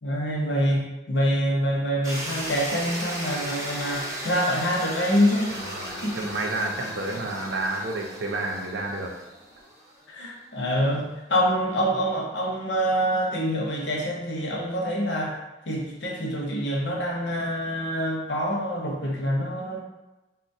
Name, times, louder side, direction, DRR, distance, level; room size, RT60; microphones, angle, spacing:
voice 1, 0.0-5.6 6.0-6.2 10.1-15.4 15.7-19.8, equal, 70° left, -2 dB, 0.7 m, -26 dB
sound 1, 2.0-10.0, right 1 dB, 15° right, 0.5 m, -36 dB
voice 2, 5.5-9.1, right 2 dB, 75° right, 1 dB, 0.5 m, -30 dB
4.0 x 2.2 x 2.7 m, 1.1 s
head